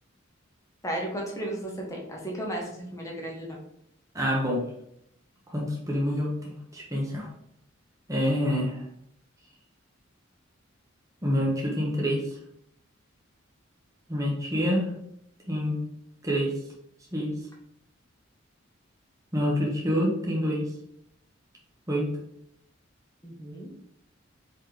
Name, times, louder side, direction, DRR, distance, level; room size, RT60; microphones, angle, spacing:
voice 1, 0.8-3.6 23.2-23.7, right 1 dB, 15° left, -2 dB, 1.1 m, -34 dB
voice 2, 4.1-4.6 5.5-7.3 8.1-8.8 11.2-12.2 14.1-14.9 15.5-15.8 16.2-16.5 17.1-17.4 19.3-20.7 21.9-22.1, equal, 15° right, -3 dB, 1.0 m, -27 dB
4.2 x 3.8 x 3.3 m, 0.74 s
head